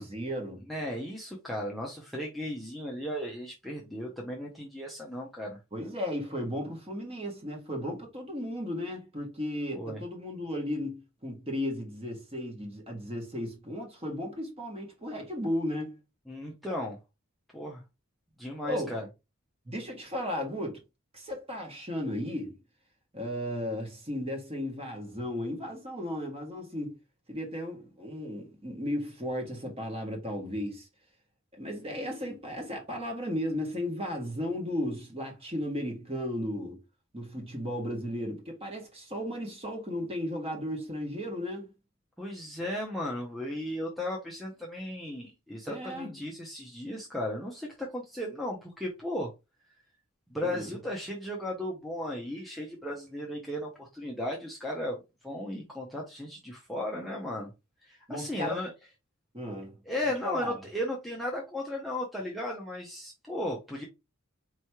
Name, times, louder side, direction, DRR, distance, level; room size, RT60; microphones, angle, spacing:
voice 1, 0.0-0.6 5.7-16.0 18.6-19.0 19.6-20.8 21.1-22.6 23.1-27.0 27.3-30.9 31.6-36.8 37.1-41.7 45.7-46.2 50.4-50.8 58.1-58.6 59.3-59.8 60.2-60.6, left 1 dB, 25° right, 1.4 m, -35 dB
voice 2, 0.7-5.6 9.7-10.0 16.3-17.0 17.5-17.8 18.4-19.1 42.2-49.3 50.3-57.5 57.8-58.7 59.9-63.8, left 1 dB, ahead, 0.7 m, -35 dB
4.6 x 3.1 x 2.9 m
head